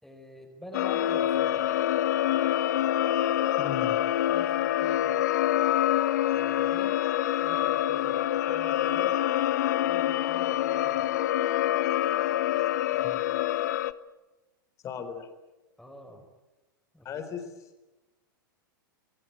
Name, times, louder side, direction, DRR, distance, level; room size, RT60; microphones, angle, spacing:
voice 1, 0.0-1.7 4.3-5.2 6.3-7.0 7.4-9.2 9.8-11.2 15.8-16.3 16.9-17.4, equal, ahead, 2 dB, 4.9 m, -47 dB
sound 1, 0.7-13.9, left 12 dB, 55° left, 1.0 m, -26 dB
voice 2, 3.6-4.0 13.0-13.2 14.8-15.3 17.0-17.4, left 7 dB, 30° left, 8 dB, 4.0 m, -37 dB
26.5 x 22.5 x 9.6 m, 1.1 s
figure-of-eight pair, 95°, 11 cm